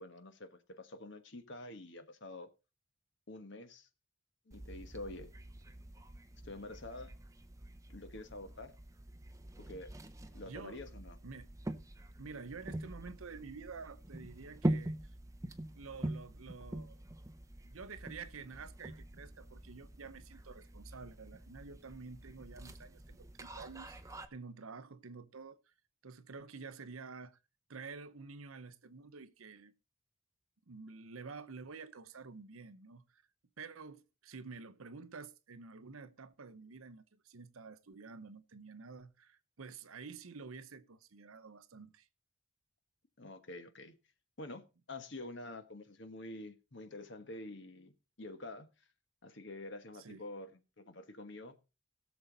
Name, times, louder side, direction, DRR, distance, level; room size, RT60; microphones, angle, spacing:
voice 1, 0.0-2.5 3.3-3.9 4.5-5.3 6.4-7.1 7.9-8.7 9.6-9.9 10.3-11.2 43.2-44.0 44.4-44.6 44.9-48.7 49.2-51.6, left 2 dB, 55° left, 1.3 m, -47 dB
sound 1, 4.5-24.3, right 1 dB, 15° right, 0.7 m, -44 dB
voice 2, 10.4-10.8 11.2-11.5 12.2-15.0 15.8-17.0 17.6-25.7 26.0-27.4 27.7-29.7 30.7-33.2 33.6-42.1 50.0-50.2, right 4 dB, 80° right, 0.8 m, -49 dB
17.0 x 6.9 x 4.0 m
head